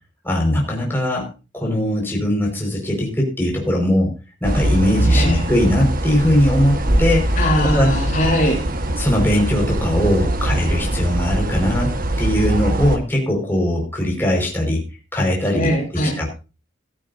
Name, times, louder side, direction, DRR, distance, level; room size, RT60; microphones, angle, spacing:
voice 1, 0.2-1.3 1.5-4.1 4.4-7.4 7.7-7.9 9.0-14.8 15.1-15.7 16.0-16.3, left 1 dB, 10° left, -1 dB, 5.0 m, -20 dB
sound 1, 4.4-13.0, right 1 dB, 45° right, 1.4 m, -21 dB
voice 2, 5.1-5.4 7.4-8.6 15.5-16.1, equal, 40° left, 0 dB, 3.9 m, -20 dB
16.0 x 14.0 x 2.7 m, 0.31 s
head